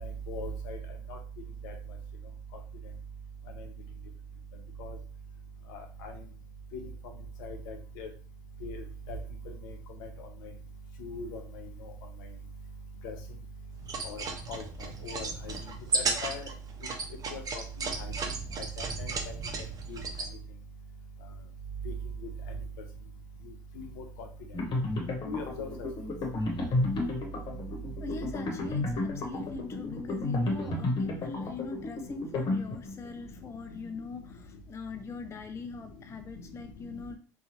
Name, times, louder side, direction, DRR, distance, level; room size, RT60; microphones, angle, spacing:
voice 1, 0.0-0.8 1.1-1.2 1.6-1.7 4.8-4.9 5.7-6.1 6.7-6.8 7.4-8.1 8.6-8.8 9.1-9.2 9.6-9.7 11.0-11.4 13.0-13.1 14.0-14.2 14.5-14.6 15.0-15.6 15.9-16.5 17.3-17.4 17.8-18.1 18.8-19.1 19.9-20.0 21.9-22.0 25.2-25.7 28.5-28.6, left 1 dB, 75° left, 4 dB, 0.7 m, -38 dB
sound 1, 13.8-20.3, right 3 dB, 40° right, 0.7 m, -35 dB
sound 2, 24.5-33.1, left 2 dB, 45° left, 1.0 m, -32 dB
voice 2, 28.0-37.2, left 3 dB, 25° left, 7 dB, 0.4 m, -41 dB
2.8 x 2.3 x 2.9 m, 0.39 s
hypercardioid pair, 80°, 10 cm